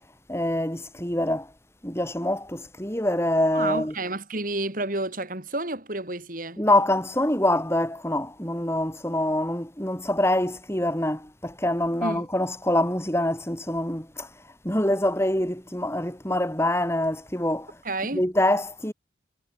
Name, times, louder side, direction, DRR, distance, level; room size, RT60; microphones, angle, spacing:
voice 1, 0.3-1.5 1.8-3.9 6.6-14.3 14.6-17.8 18.1-18.9, left 1 dB, 15° left, 5.2 m, -25 dB
voice 2, 3.5-6.6 12.0-12.2 17.8-18.2, right 2 dB, 45° right, 4.7 m, -30 dB
head